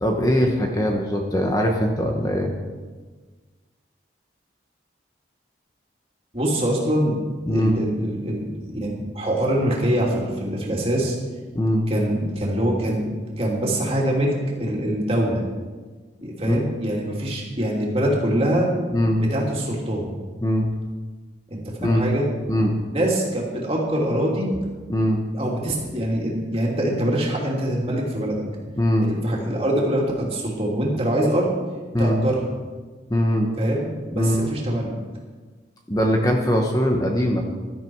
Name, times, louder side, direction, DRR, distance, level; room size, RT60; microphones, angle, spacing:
voice 1, 0.0-2.5 7.5-7.7 11.5-11.9 16.4-16.6 18.9-19.2 20.4-20.7 21.8-22.0 22.5-22.7 24.9-25.2 28.8-29.1 31.9-32.2 33.1-33.5 34.1-34.5 35.9-37.4, equal, 20° left, 2 dB, 1.1 m, -21 dB
voice 2, 6.3-7.2 7.5-11.2 11.9-13.1 13.4-15.4 16.2-18.7 19.2-20.1 21.5-22.3 22.9-24.5 25.3-28.4 29.0-31.5 32.0-32.4 33.6-34.9, right 1 dB, 30° right, -2 dB, 2.9 m, -24 dB
16.0 x 12.5 x 4.7 m, 1.4 s
head